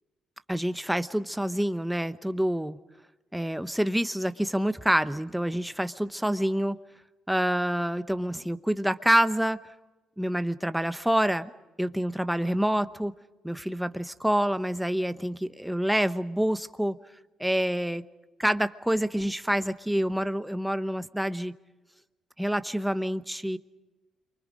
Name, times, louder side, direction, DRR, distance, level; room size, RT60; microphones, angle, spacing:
voice 1, 0.5-2.8 3.3-6.8 7.3-9.6 10.2-11.5 11.8-13.1 13.4-17.0 17.4-18.0 18.4-21.5 22.4-23.6, equal, 5° right, 11 dB, 0.9 m, -27 dB
30.0 x 24.5 x 5.1 m, 1.1 s
cardioid pair, 90°, 0 cm